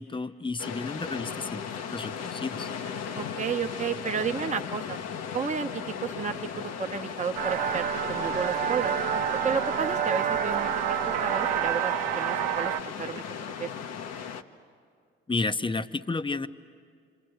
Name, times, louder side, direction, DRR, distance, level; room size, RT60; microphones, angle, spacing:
voice 1, 0.0-2.7 15.3-16.5, left 3 dB, 15° left, 12 dB, 0.9 m, -32 dB
sound 1, 0.6-14.4, left 7 dB, 60° left, 1.2 m, -36 dB
voice 2, 3.1-5.0 5.3-8.9 9.3-13.2 13.6-13.7, right 6 dB, 25° right, 4 dB, 1.1 m, -32 dB
sound 2, 7.4-12.8, right 10 dB, 70° right, 0.8 m, -28 dB
27.5 x 27.0 x 8.0 m, 2.1 s
hypercardioid pair, 50°, 30 cm